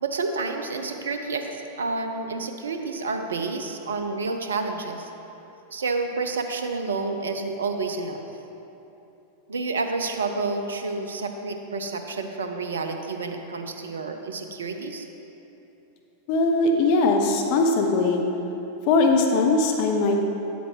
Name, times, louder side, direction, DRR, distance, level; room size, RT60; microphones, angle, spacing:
voice 1, 0.0-5.1 5.7-8.2 9.5-15.1, right 3 dB, 70° right, 6 dB, 0.5 m, -29 dB
voice 2, 16.3-18.2 18.9-20.2, left 3 dB, 45° left, 3 dB, 0.7 m, -20 dB
8.6 x 8.0 x 3.2 m, 3.0 s
figure-of-eight pair, 90°, 0 cm